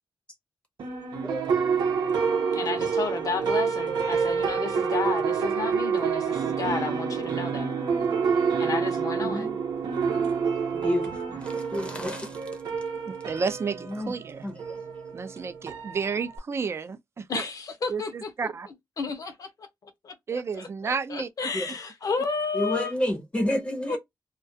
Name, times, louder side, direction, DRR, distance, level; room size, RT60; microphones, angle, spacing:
sound 1, 0.8-16.4, right 6 dB, 85° right, 0.7 m, -28 dB
voice 1, 1.2-1.7 9.2-9.5 10.8-12.4 13.9-14.1 14.4-14.5 21.5-21.7 22.5-24.0, left 1 dB, 15° left, 0.6 m, -30 dB
voice 2, 2.5-7.7 8.6-9.5 17.3-18.3 19.0-22.9 23.9-24.0, left 4 dB, 55° left, 0.6 m, -32 dB
voice 3, 13.3-14.5 15.1-17.4 17.9-18.7 20.3-21.3, right 5 dB, 35° right, 0.3 m, -31 dB
2.3 x 2.2 x 2.6 m
wide cardioid pair, 130°, 7 cm